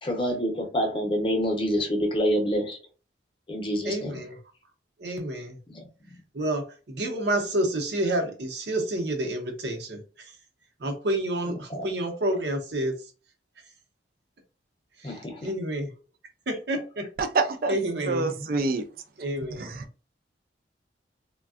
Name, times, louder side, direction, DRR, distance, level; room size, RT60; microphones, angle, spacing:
voice 1, 0.0-2.8 3.5-4.2 5.7-6.2 11.7-11.8 15.0-15.5, equal, 30° left, 0.7 m, -27 dB
voice 2, 3.8-4.4 5.0-5.6 6.3-10.4 10.8-13.1 15.0-15.9 16.5-17.1 17.7-18.5 19.2-19.7, right 1 dB, 70° right, 0.8 m, -29 dB
voice 3, 17.2-17.7 18.1-18.8, right 3 dB, 50° right, 0.4 m, -25 dB
3.4 x 2.2 x 2.4 m
head